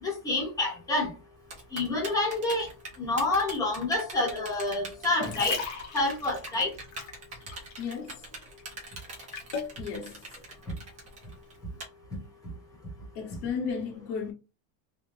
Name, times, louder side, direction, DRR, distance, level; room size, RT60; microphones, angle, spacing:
voice 1, 0.0-1.1 1.7-2.7 3.0-5.6 5.9-6.7, left 2 dB, 10° left, 1.1 m, -28 dB
Typing, 1.5-11.8, right 2 dB, 15° right, 0.7 m, -42 dB
sound 1, 5.0-8.1 8.3-9.8 10.4-10.5, left 5 dB, 40° left, 0.8 m, -38 dB
voice 2, 5.2-5.5 7.8-8.2 9.8-10.2 13.1-14.3, left 6 dB, 70° left, 1.4 m, -34 dB
3.3 x 2.2 x 4.1 m
cardioid pair, 175°, 45 cm